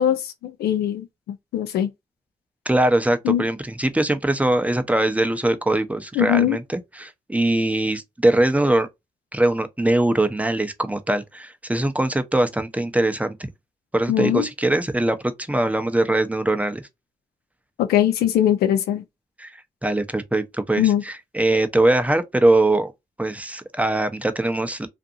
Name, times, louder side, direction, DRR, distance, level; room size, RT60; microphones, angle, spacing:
voice 1, 0.0-1.9 3.2-3.4 6.2-6.6 14.1-14.5 17.8-19.0 20.8-21.0, left 11 dB, 85° left, 0.5 m, -21 dB
voice 2, 2.7-8.9 9.3-13.5 13.9-15.2 15.5-16.8 19.4-22.9 23.2-24.9, right 1 dB, 10° right, 0.6 m, -22 dB
2.5 x 2.5 x 2.4 m
supercardioid pair, 45°, 16 cm